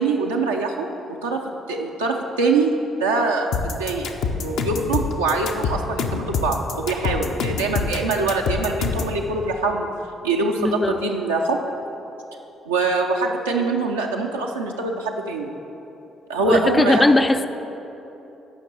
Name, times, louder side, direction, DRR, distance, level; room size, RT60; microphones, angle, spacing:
voice 1, 0.0-1.4 1.7-2.7 3.0-4.1 4.4-9.9 10.2-11.6 12.7-15.5 16.3-17.0, right 3 dB, 80° right, -1 dB, 0.5 m, -23 dB
sound 1, 3.5-9.2, left 5 dB, 60° left, 0.7 m, -25 dB
voice 2, 10.6-11.0 16.4-17.5, left 2 dB, 20° left, 10 dB, 0.5 m, -18 dB
9.9 x 5.8 x 7.4 m, 3.0 s
figure-of-eight pair, 45°, 0 cm